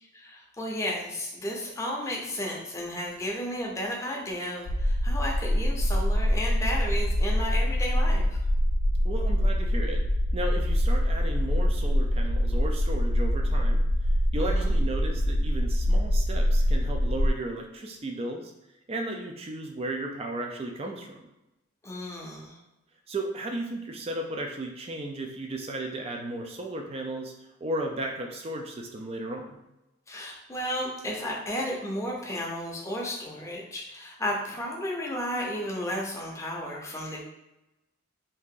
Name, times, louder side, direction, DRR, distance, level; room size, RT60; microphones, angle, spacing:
voice 1, 0.1-8.4 14.4-14.7 21.8-22.6 30.1-37.3, equal, 15° left, -2 dB, 0.6 m, -33 dB
sound 1, 4.7-17.3, equal, 65° left, 0.4 m, -24 dB
voice 2, 9.0-10.1 10.3-13.8 14.3-18.5 18.9-21.3 23.1-27.3 27.6-29.6, right 1 dB, 30° right, 2 dB, 0.3 m, -34 dB
2.8 x 2.5 x 3.6 m, 0.94 s
head